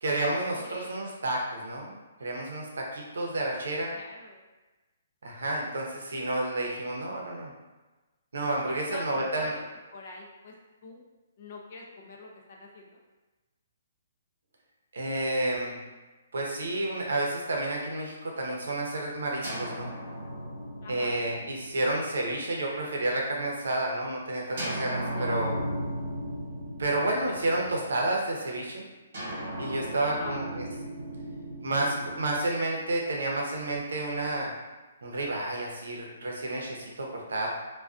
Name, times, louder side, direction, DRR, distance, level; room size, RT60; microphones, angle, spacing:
voice 1, 0.0-3.9 5.2-7.5 8.3-9.5 14.9-15.8 16.3-19.9 20.9-25.6 26.8-28.8 29.6-30.6 31.6-34.5 35.0-37.5, right 2 dB, 85° right, -1 dB, 0.6 m, -30 dB
voice 2, 0.5-1.2 3.9-4.4 8.7-9.6 9.9-10.5 10.8-11.0 11.4-13.0 20.8-21.3 25.1-25.3 30.0-30.4, left 2 dB, 35° left, -1 dB, 0.4 m, -44 dB
sound 1, 19.4-23.2 24.6-28.1 29.1-33.3, equal, 50° right, 1.0 m, -37 dB
2.3 x 2.2 x 2.4 m, 1.2 s
hypercardioid pair, 175°, 0 cm